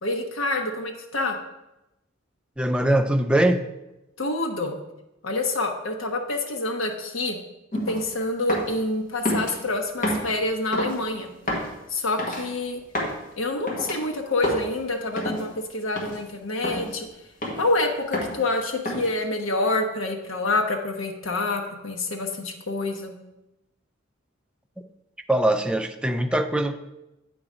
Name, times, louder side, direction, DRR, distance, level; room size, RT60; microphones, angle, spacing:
voice 1, 0.0-1.4 4.2-4.8 5.2-7.4 7.9-11.3 11.9-12.8 13.4-17.1 17.5-23.1, left 2 dB, 80° left, 3 dB, 0.9 m, -27 dB
voice 2, 2.6-3.7 25.3-26.8, right 1 dB, 5° right, 6 dB, 0.3 m, -22 dB
sound 1, 7.7-8.0 8.5-8.8 9.3-9.5 10.0-10.3 10.7-11.0 11.5-11.7 12.2-12.4 12.9-13.2 13.7-14.0 14.4-14.7 15.2-15.4 16.0-16.2 16.6-16.9 17.4-17.7 18.1-18.4 18.9-19.2, equal, 40° left, 1.6 m, -28 dB
8.6 x 3.9 x 4.9 m, 0.94 s
head